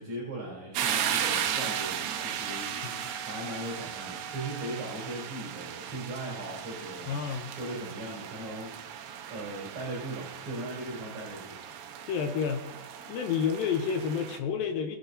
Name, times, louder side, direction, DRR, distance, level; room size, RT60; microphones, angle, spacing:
voice 1, 0.0-2.8 3.2-7.2 7.6-8.7 9.3-11.6, right 1 dB, 45° right, -5 dB, 4.7 m, -38 dB
sound 1, 0.8-14.4, right 9 dB, 85° right, 3.2 m, -36 dB
Wind instrument woodwind instrument, 1.5-5.4, right 5 dB, 70° right, 1.8 m, -47 dB
voice 2, 7.1-7.5 12.1-12.6 13.1-15.0, left 7 dB, 80° left, 5 dB, 2.1 m, -30 dB
22.5 x 8.0 x 2.7 m, 1.0 s
omnidirectional pair, 4.9 m